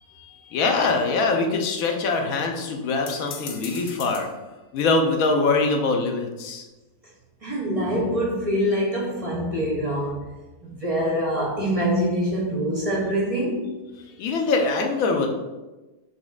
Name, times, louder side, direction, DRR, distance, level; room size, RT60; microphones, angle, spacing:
voice 1, 0.1-4.3 4.7-6.7 14.2-15.3, left 3 dB, 70° left, 3 dB, 1.0 m, -23 dB
sound 1, 3.0-4.4, left 6 dB, 85° left, 0.5 m, -38 dB
voice 2, 7.4-10.3 10.6-13.8, equal, 35° right, -4 dB, 0.5 m, -25 dB
5.3 x 3.2 x 2.4 m, 1.1 s
omnidirectional pair, 1.7 m